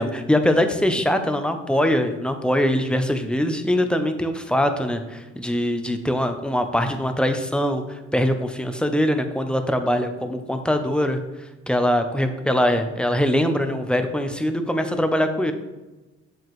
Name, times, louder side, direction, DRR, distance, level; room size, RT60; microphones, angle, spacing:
voice 1, 0.0-11.2 11.7-15.5, equal, 5° left, 7 dB, 0.6 m, -22 dB
7.3 x 4.8 x 3.1 m, 1.1 s
cardioid pair, 90°, 30 cm